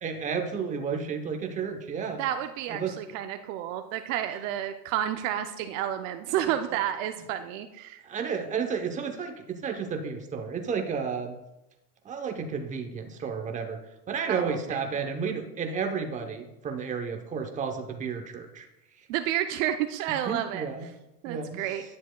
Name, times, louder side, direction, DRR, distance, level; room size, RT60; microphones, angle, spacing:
voice 1, 0.0-2.2 2.7-3.0 8.0-11.4 12.0-13.8 14.1-18.7 19.0-19.1 20.1-20.9 21.2-21.6, right 6 dB, 15° right, 4 dB, 0.7 m, -32 dB
voice 2, 2.2-8.0 14.3-14.6 19.1-20.6 21.2-21.8, right 11 dB, 55° right, 8 dB, 0.6 m, -30 dB
10.5 x 7.1 x 2.2 m, 0.94 s
supercardioid pair, 130°, 47 cm